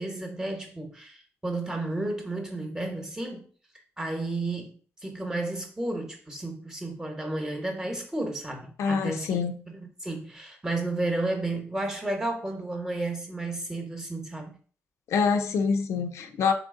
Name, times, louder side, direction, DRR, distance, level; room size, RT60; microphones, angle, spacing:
voice 1, 0.0-3.5 4.0-9.3 9.7-14.6, right 2 dB, 10° right, 1.0 m, -32 dB
voice 2, 8.8-9.6 15.1-16.5, left 5 dB, 75° left, 0.6 m, -25 dB
3.9 x 3.2 x 3.7 m
cardioid pair, 120°, 5 cm